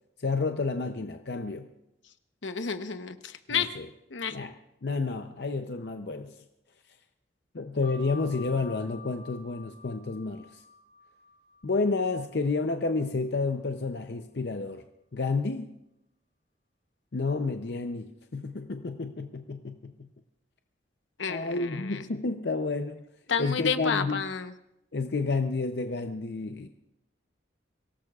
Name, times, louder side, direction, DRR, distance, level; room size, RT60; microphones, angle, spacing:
voice 1, 0.2-1.7 3.5-3.8 4.3-4.5 4.8-6.3 7.5-10.6 11.6-14.8 15.1-15.7 17.1-20.1 21.3-23.0 23.4-24.2 24.9-26.7, left 3 dB, 60° left, 6 dB, 0.6 m, -30 dB
voice 2, 2.4-3.7 4.1-4.4 21.2-22.0 23.3-24.5, left 6 dB, 80° left, 9 dB, 0.9 m, -30 dB
sound 1, 7.8-13.0, left 4 dB, 70° right, 4.1 m, -50 dB
24.0 x 18.0 x 2.4 m, 0.85 s
head